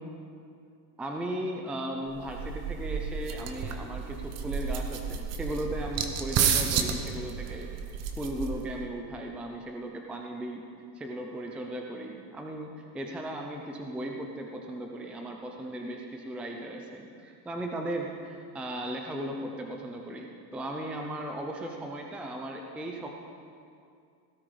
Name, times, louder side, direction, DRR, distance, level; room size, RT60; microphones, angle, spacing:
voice 1, 1.0-7.7 8.2-10.6 10.9-23.1, right 1 dB, 5° right, 2 dB, 0.5 m, -37 dB
sound 1, 2.1-8.8, right 7 dB, 35° right, 1.0 m, -31 dB
17.5 x 12.5 x 4.9 m, 2.4 s
supercardioid pair, 160°, 46 cm